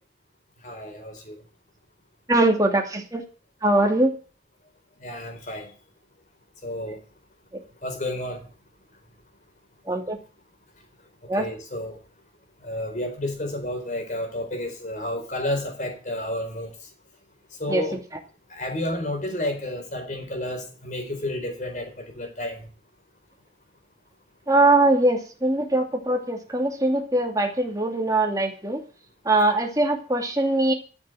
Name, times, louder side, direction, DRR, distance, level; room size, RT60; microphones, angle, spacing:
voice 1, 0.6-1.4 5.0-5.7 6.6-7.0 7.8-8.4 11.3-12.0 12.6-16.7 17.6-18.0 18.5-22.6, left 1 dB, 45° left, 5 dB, 4.1 m, -31 dB
voice 2, 2.3-3.2 3.6-4.1 9.9-10.2 11.3-11.4 17.7-17.8 24.5-28.8 29.3-30.7, right 2 dB, 20° right, 2 dB, 2.5 m, -21 dB
14.0 x 7.0 x 9.1 m, 0.38 s
head